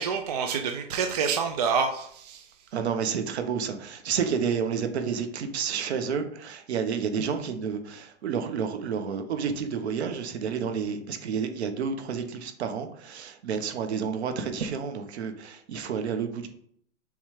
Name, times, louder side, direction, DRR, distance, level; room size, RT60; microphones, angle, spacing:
voice 1, 0.0-2.4, right 6 dB, 35° right, 4 dB, 0.4 m, -27 dB
voice 2, 2.7-16.5, right 6 dB, 60° right, 7 dB, 1.2 m, -30 dB
7.1 x 3.3 x 5.0 m, 0.64 s
hypercardioid pair, 170°, 37 cm